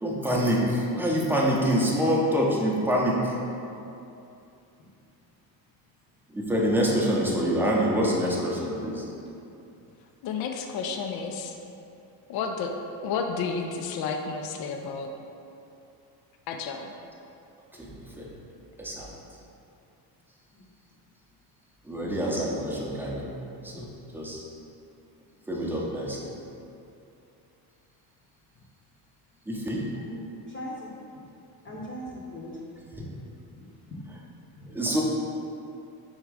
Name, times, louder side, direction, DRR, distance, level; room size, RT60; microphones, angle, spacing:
voice 1, 0.0-3.3 6.3-9.1 17.8-18.3 18.8-19.1 21.8-23.3 23.6-23.8 24.1-24.4 25.5-26.3 29.5-29.9 34.7-35.0, equal, 5° right, -4 dB, 0.7 m, -26 dB
voice 2, 10.2-11.6 12.3-12.7 13.0-15.1 16.5-16.9, left 5 dB, 55° left, 4 dB, 0.5 m, -31 dB
voice 3, 30.5-30.9 31.6-32.5 33.0-33.1 33.8-34.0 34.5-34.7, left 1 dB, 25° left, -5 dB, 0.9 m, -39 dB
3.6 x 3.1 x 4.7 m, 2.7 s
cardioid pair, 100°, 45 cm